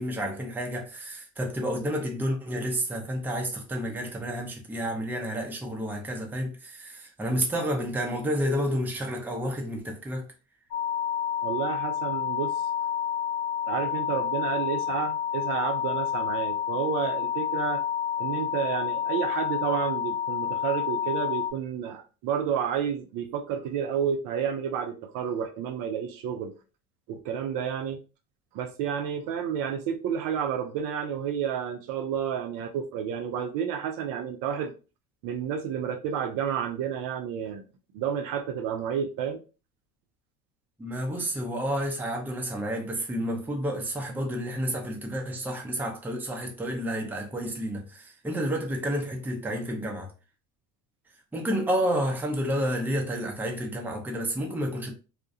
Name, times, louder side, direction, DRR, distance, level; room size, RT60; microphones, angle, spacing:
voice 1, 0.0-10.3 40.8-50.1 51.3-54.9, equal, 5° right, 0.5 m, -30 dB
sound 1, 10.7-21.5, left 9 dB, 60° left, 0.6 m, -29 dB
voice 2, 11.4-12.6 13.7-17.8 18.2-26.5 27.1-28.0 28.5-34.7 35.2-37.6 37.9-39.4, right 8 dB, 55° right, 0.6 m, -30 dB
2.3 x 2.1 x 2.6 m
hypercardioid pair, 85°, 41 cm